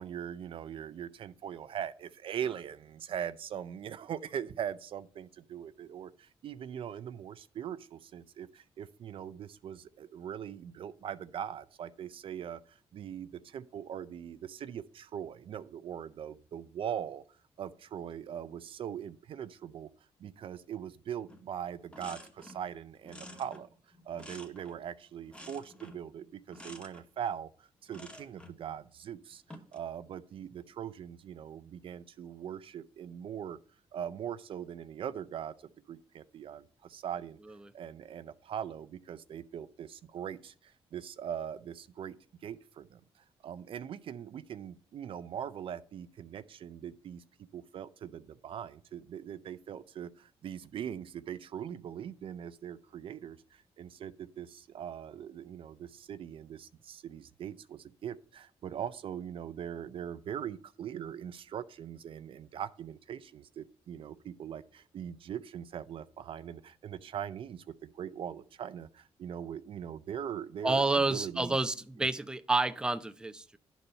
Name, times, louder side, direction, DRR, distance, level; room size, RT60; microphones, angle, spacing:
voice 1, 0.0-19.9 20.2-23.7 24.1-33.6 33.9-35.5 35.9-37.4 37.7-42.2 42.4-43.0 43.4-71.6 72.0-72.1, right 9 dB, 60° right, 13 dB, 0.5 m, -41 dB
sound 1, 21.3-21.5 21.7-22.7 23.0-24.9 25.3-26.1 26.5-27.0 27.9-28.6 29.3-29.8, left 1 dB, 10° left, 1.1 m, -50 dB
voice 2, 70.6-73.6, right 2 dB, 10° right, 8 dB, 0.5 m, -29 dB
10.5 x 4.1 x 5.5 m, 0.43 s
cardioid pair, 105°, 10 cm